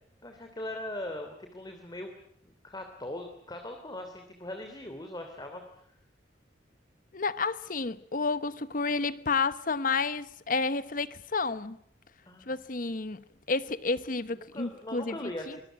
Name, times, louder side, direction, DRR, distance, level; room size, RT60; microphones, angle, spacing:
voice 1, 0.2-2.1 2.4-5.8 12.3-12.5 14.3-15.6, left 1 dB, 20° left, 2.9 m, -40 dB
voice 2, 7.1-11.8 12.5-15.6, left 4 dB, 50° left, 1.0 m, -31 dB
25.0 x 22.0 x 9.1 m
head